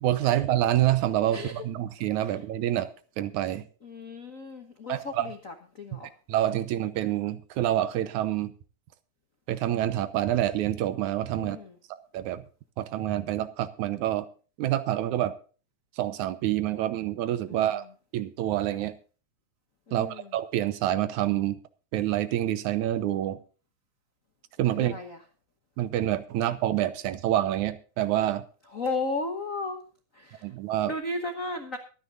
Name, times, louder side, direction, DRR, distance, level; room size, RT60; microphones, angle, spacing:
voice 1, 0.0-2.9 3.2-3.6 4.9-5.3 5.9-6.0 6.3-8.5 9.5-11.6 11.9-12.4 12.8-14.3 14.6-15.3 16.0-17.8 18.1-18.9 19.9-21.6 21.9-23.4 24.6-25.0 25.8-28.4 30.4-30.9, right 13 dB, 80° right, 13 dB, 2.3 m, -27 dB
voice 2, 1.3-1.6 2.2-2.4 3.8-6.1 11.4-11.8 17.5-17.8 19.9-20.3 24.8-25.2 28.7-29.8 30.1-30.5 30.9-31.8, left 3 dB, 55° left, 6 dB, 0.8 m, -35 dB
22.5 x 9.6 x 2.6 m, 0.37 s
omnidirectional pair, 3.4 m